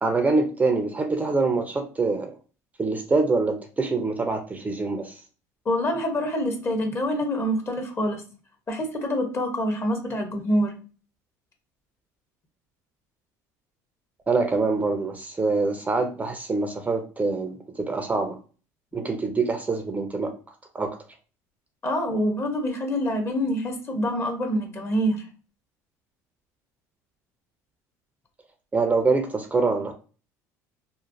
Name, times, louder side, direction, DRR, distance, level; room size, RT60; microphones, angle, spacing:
voice 1, 0.0-2.3 2.8-5.2 14.3-18.4 18.9-20.3 20.7-21.0 28.7-29.9, right 3 dB, 20° right, 0.4 m, -25 dB
voice 2, 5.6-8.2 8.7-10.7 21.8-25.2, equal, 30° left, 0.8 m, -26 dB
3.0 x 2.1 x 2.5 m
supercardioid pair, 95°, 8 cm